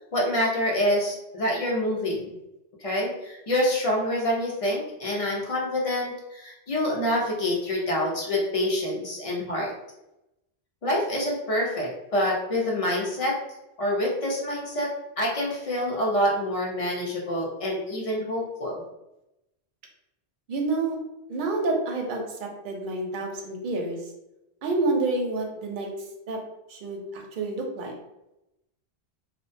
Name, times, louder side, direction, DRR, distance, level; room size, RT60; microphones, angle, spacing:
voice 1, 0.1-2.3 2.8-9.7 10.8-13.3 13.8-14.9 15.2-18.8, left 1 dB, 50° left, -3 dB, 0.4 m, -26 dB
voice 2, 20.5-21.0 21.3-24.1 24.6-25.9 26.3-26.4 26.7-28.0, right 2 dB, 60° right, 1 dB, 0.6 m, -28 dB
2.2 x 2.1 x 2.5 m, 0.91 s
omnidirectional pair, 1.1 m